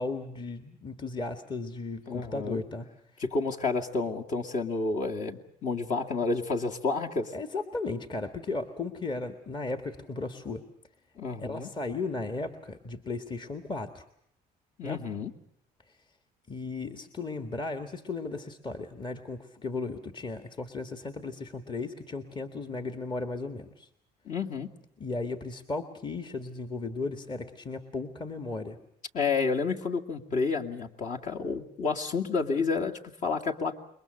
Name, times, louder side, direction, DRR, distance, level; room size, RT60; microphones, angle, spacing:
voice 1, 0.0-2.9 3.1-3.2 7.3-10.6 11.4-14.1 14.8-15.0 15.9-16.0 16.5-23.9 25.0-28.8, left 3 dB, 25° left, 7 dB, 1.8 m, -35 dB
voice 2, 2.1-2.6 3.2-7.3 11.2-11.7 14.8-15.3 24.3-24.7 29.1-33.7, left 4 dB, 45° left, 2 dB, 2.5 m, -30 dB
28.0 x 22.5 x 6.6 m, 0.67 s
cardioid pair, 110°, 17 cm